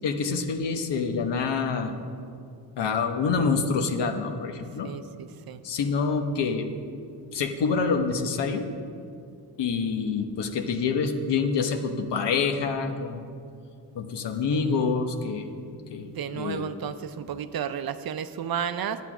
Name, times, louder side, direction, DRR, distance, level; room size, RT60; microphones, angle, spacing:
voice 1, 0.0-1.9 2.8-4.9 5.6-6.7 7.3-8.7 9.6-13.3 13.9-15.5 15.9-16.1 16.3-16.7, left 5 dB, 75° left, 6 dB, 1.0 m, -26 dB
voice 2, 4.8-5.6 14.5-14.9 16.1-19.0, right 8 dB, 55° right, 11 dB, 0.6 m, -33 dB
9.1 x 8.2 x 6.0 m, 2.4 s
cardioid pair, 95°, 42 cm